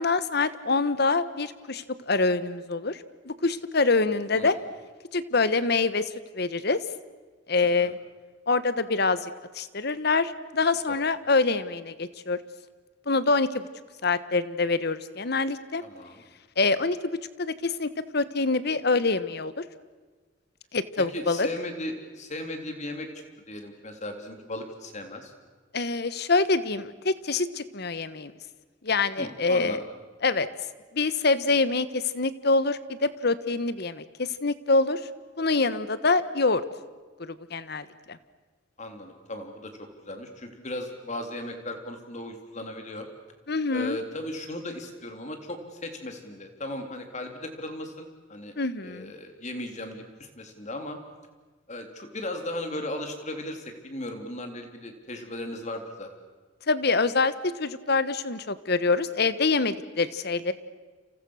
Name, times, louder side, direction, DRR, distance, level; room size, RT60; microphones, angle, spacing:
voice 1, 0.0-4.5 5.1-6.8 7.5-8.0 8.5-9.3 9.5-12.4 13.1-13.6 14.0-15.8 16.6-17.0 17.4-19.6 20.7-21.5 25.7-28.3 28.8-29.8 30.2-30.5 30.9-35.0 35.4-36.6 37.2-38.2 43.5-44.0 48.6-49.1 56.7-60.5, left 3 dB, 55° left, 14 dB, 1.3 m, -25 dB
voice 2, 15.8-16.2 21.1-23.1 23.5-25.3 29.2-29.8 38.8-39.7 40.0-43.1 43.7-48.6 48.8-51.0 51.7-56.1, left 1 dB, 40° left, 5 dB, 3.6 m, -37 dB
29.5 x 28.5 x 6.5 m, 1.4 s
head